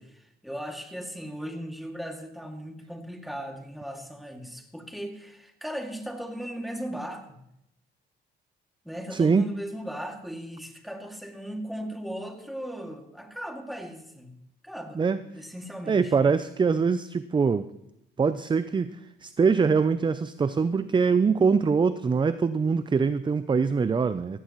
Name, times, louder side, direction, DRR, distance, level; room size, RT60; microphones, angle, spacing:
voice 1, 0.0-7.4 8.8-14.3 14.6-16.1, equal, ahead, 2 dB, 2.3 m, -37 dB
voice 2, 9.1-9.5 15.0-15.2 15.9-17.7 18.2-24.4, right 5 dB, 25° right, 13 dB, 0.5 m, -23 dB
16.0 x 15.5 x 3.1 m, 0.82 s
cardioid pair, 90°, 20 cm